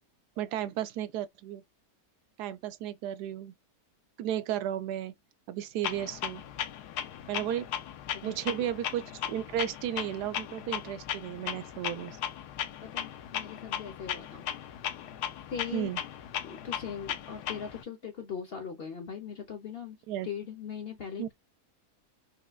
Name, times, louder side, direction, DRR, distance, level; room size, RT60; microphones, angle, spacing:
voice 1, 0.4-1.6 2.4-3.5 4.2-5.1 5.5-6.4 7.3-7.7 8.2-12.2 15.7-16.0 20.1-20.3 21.2-21.3, right 11 dB, 90° right, 1.1 m, -34 dB
Clock, 5.8-17.8, left 10 dB, 90° left, 1.2 m, -37 dB
voice 2, 12.8-14.4 15.5-15.9 16.4-20.0 20.2-21.3, left 7 dB, 55° left, 0.7 m, -40 dB
4.9 x 2.2 x 2.2 m
omnidirectional pair, 1.7 m